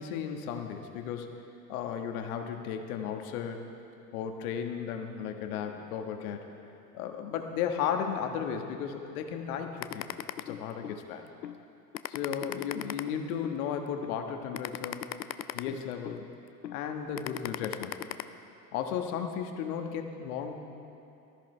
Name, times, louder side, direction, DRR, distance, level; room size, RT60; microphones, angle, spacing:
voice 1, 0.0-1.3 1.7-3.6 4.1-6.4 6.9-10.1 10.4-11.2 12.1-15.1 15.5-16.3 16.7-18.1 18.7-20.6, left 7 dB, 60° left, 5 dB, 1.4 m, -34 dB
sound 1, 9.8-11.0 11.4-11.6 11.9-13.6 14.0-14.2 14.5-16.2 16.6-16.8 17.2-18.2, left 11 dB, 90° left, 0.6 m, -37 dB
19.0 x 13.5 x 3.2 m, 2.7 s
hypercardioid pair, 85°, 49 cm